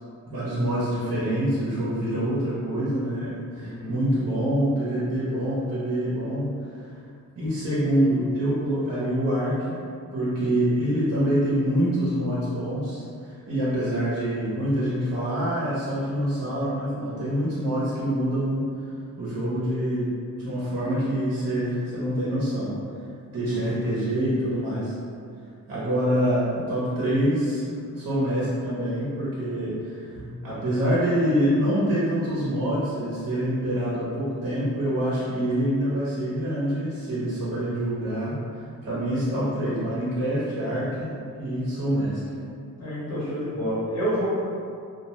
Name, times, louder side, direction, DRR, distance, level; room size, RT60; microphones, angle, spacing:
voice 1, 0.3-6.5 6.8-7.0 7.3-9.8 10.1-18.7 19.2-20.1 20.4-22.7 23.3-25.0 25.7-27.7 27.9-41.1 41.4-42.2, equal, 40° right, -9 dB, 0.9 m, -26 dB
voice 2, 3.6-4.0 23.4-23.5 42.8-44.3, equal, 45° left, -10 dB, 1.3 m, -28 dB
2.4 x 2.2 x 3.0 m, 2.4 s
cardioid pair, 75°, 36 cm